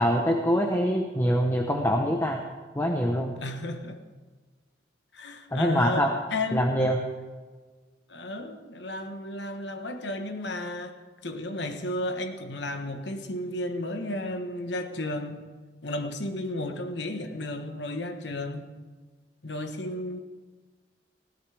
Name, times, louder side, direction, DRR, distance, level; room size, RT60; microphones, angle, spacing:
voice 1, 0.0-2.4 2.7-3.3 5.5-6.1 6.5-7.0, equal, 15° left, 2 dB, 1.0 m, -24 dB
voice 2, 3.4-4.0 5.1-6.8 8.1-11.0 11.2-15.5 15.8-18.7 19.4-20.2, left 1 dB, 70° left, 7 dB, 1.3 m, -33 dB
20.0 x 15.5 x 3.5 m, 1.4 s
head